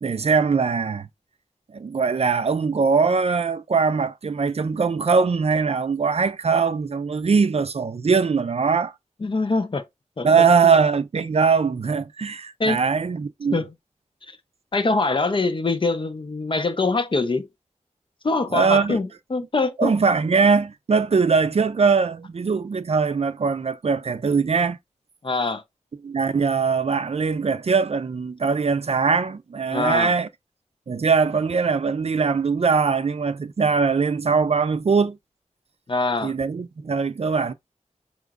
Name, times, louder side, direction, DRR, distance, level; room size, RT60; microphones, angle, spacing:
voice 1, 0.0-1.1 1.7-8.9 10.2-13.6 18.5-19.0 19.8-24.8 26.0-30.3 30.9-35.2 36.2-37.5, right 5 dB, 55° right, 0.4 m, -21 dB
voice 2, 9.2-9.8 10.2-10.5 12.6-12.8 13.5-13.7 14.3-14.4 14.7-17.5 18.2-19.9 25.2-25.6 29.7-30.1 35.9-36.3, left 3 dB, 40° left, 0.5 m, -23 dB
4.9 x 3.0 x 2.3 m
wide cardioid pair, 80°, 13 cm